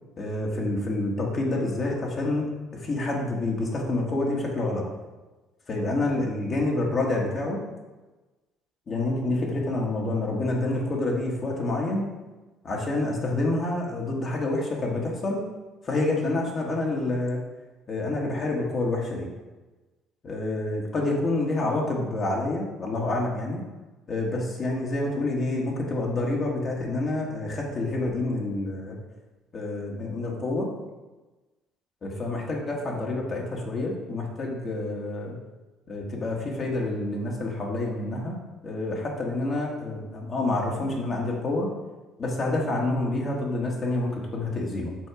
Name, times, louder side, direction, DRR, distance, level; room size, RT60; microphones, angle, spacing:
voice 1, 0.2-2.5 2.7-4.8 5.7-7.6 8.9-12.0 12.6-15.4 15.8-17.4 17.9-19.3 20.2-23.6 24.1-29.0 29.5-30.7 32.0-35.4 35.9-38.4 38.6-41.7 42.2-45.0, left 2 dB, 40° left, -1 dB, 1.5 m, -28 dB
6.3 x 3.5 x 4.9 m, 1.2 s
supercardioid pair, 85°, 0 cm